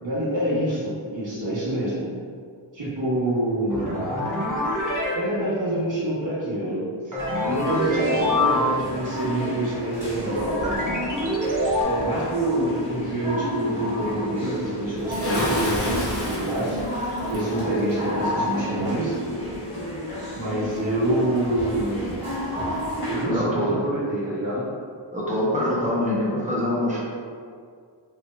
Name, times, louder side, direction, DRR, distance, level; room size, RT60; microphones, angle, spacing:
voice 1, 0.0-2.0 2.7-4.0 5.1-7.1 7.4-10.7 11.8-16.8 17.3-19.1 20.3-22.1 23.1-24.6, right 1 dB, 75° right, -10 dB, 1.5 m, -26 dB
sound 1, 3.7-5.1 7.1-8.9 10.6-11.8, left 1 dB, 45° right, 0.9 m, -25 dB
sound 2, 7.2-23.2, equal, 50° left, 1.4 m, -31 dB
Bathtub (filling or washing) / Splash splatter, 15.1-17.6, left 1 dB, 30° left, 0.7 m, -31 dB
voice 2, 23.2-23.8 25.1-27.0, left 1 dB, 15° right, -7 dB, 0.9 m, -24 dB
3.4 x 2.5 x 2.4 m, 2.2 s
wide cardioid pair, 50°, 46 cm